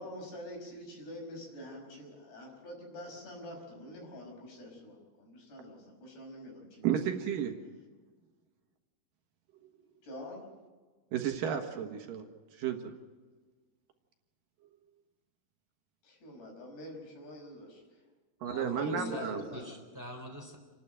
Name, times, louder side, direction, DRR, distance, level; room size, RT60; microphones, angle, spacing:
voice 1, 0.0-6.9 10.0-10.4 16.0-17.8 18.4-19.7, left 1 dB, 85° left, 1 dB, 7.6 m, -45 dB
voice 2, 6.8-7.5 11.1-12.2 12.5-12.9 18.4-19.4, right 8 dB, 65° right, 4 dB, 2.9 m, -32 dB
voice 3, 18.4-20.6, left 1 dB, 5° right, 3 dB, 3.1 m, -44 dB
29.0 x 12.0 x 9.0 m, 1.4 s
omnidirectional pair, 4.6 m